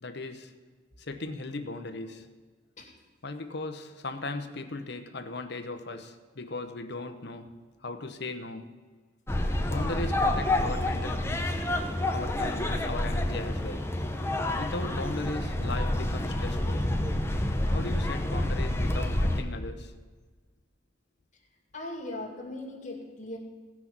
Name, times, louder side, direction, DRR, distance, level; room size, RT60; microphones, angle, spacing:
voice 1, 0.0-0.5 1.0-2.3 3.2-7.5 7.8-8.8 9.7-11.6 12.1-13.9 14.6-16.9 17.7-19.9, left 2 dB, 60° left, 8 dB, 0.9 m, -37 dB
sound 1, 9.3-19.4, left 1 dB, 15° left, 0.8 m, -28 dB
voice 2, 21.7-23.4, left 1 dB, 40° left, -1 dB, 2.3 m, -39 dB
16.0 x 6.1 x 6.1 m, 1.4 s
head